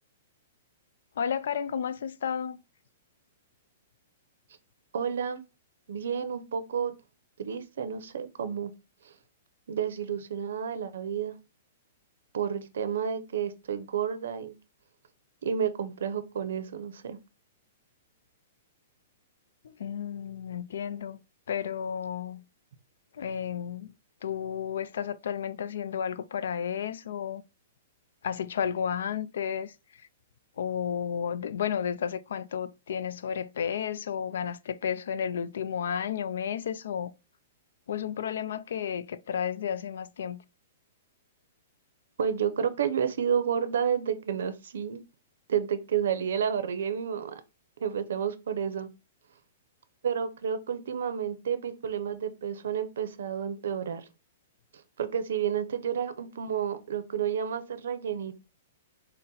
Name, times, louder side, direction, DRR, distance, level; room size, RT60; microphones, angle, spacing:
voice 1, 1.2-2.6 19.6-21.2 21.5-22.4 23.2-23.9 24.2-27.4 28.2-29.7 30.6-37.1 37.9-40.4, left 8 dB, 75° left, 0.3 m, -32 dB
voice 2, 4.9-5.4 5.9-6.9 7.4-8.7 9.7-11.3 12.3-14.6 15.4-17.2 42.2-45.0 45.5-47.4 47.8-48.9 50.0-54.1 54.7-58.4, right 8 dB, 75° right, 0.5 m, -30 dB
4.0 x 2.1 x 3.7 m
hypercardioid pair, 160°, 0 cm